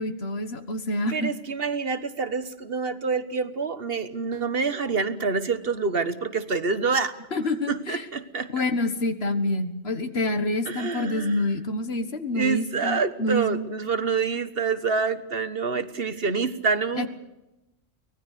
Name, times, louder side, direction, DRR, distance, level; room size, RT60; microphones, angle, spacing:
voice 1, 0.0-1.3 7.3-8.1 8.5-13.6 17.0-17.1, left 1 dB, 60° left, 9 dB, 1.8 m, -27 dB
voice 2, 1.1-7.1 7.7-8.6 10.7-11.3 12.3-17.1, right 5 dB, 55° right, 11 dB, 1.4 m, -27 dB
24.5 x 19.0 x 6.7 m, 0.95 s
omnidirectional pair, 1.2 m